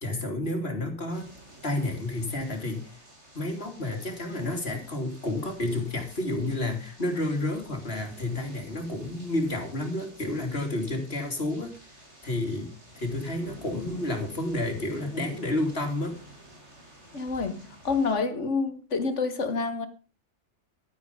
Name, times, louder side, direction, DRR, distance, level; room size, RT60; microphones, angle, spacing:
voice 1, 0.0-1.3 1.6-3.0 3.3-11.7 12.2-16.2, left 1 dB, 60° left, 3.2 m, -30 dB
sound 1, 1.1-18.2, right 1 dB, 70° right, 4.7 m, -50 dB
voice 2, 17.1-19.9, left 4 dB, 85° left, 1.9 m, -28 dB
12.0 x 10.0 x 5.2 m
omnidirectional pair, 1.2 m